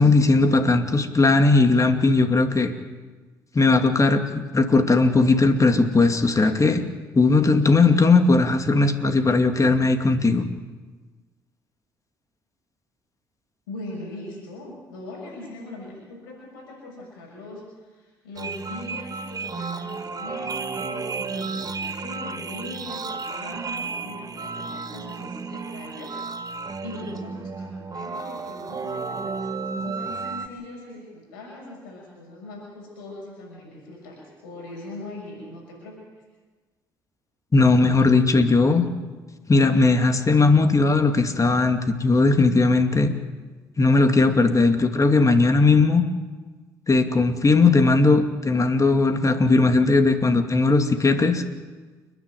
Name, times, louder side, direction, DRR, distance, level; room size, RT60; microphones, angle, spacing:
voice 1, 0.0-2.7 3.5-6.8 7.1-10.5 37.5-38.8 39.5-43.1 43.8-46.0 46.9-51.4, left 3 dB, 30° left, 7 dB, 2.5 m, -18 dB
voice 2, 13.7-36.0, left 2 dB, 85° left, -2 dB, 6.6 m, -40 dB
sound 1, 18.4-30.5, right 4 dB, 35° right, 1.6 m, -32 dB
29.5 x 10.5 x 9.2 m, 1.3 s
hypercardioid pair, 55°, 11 cm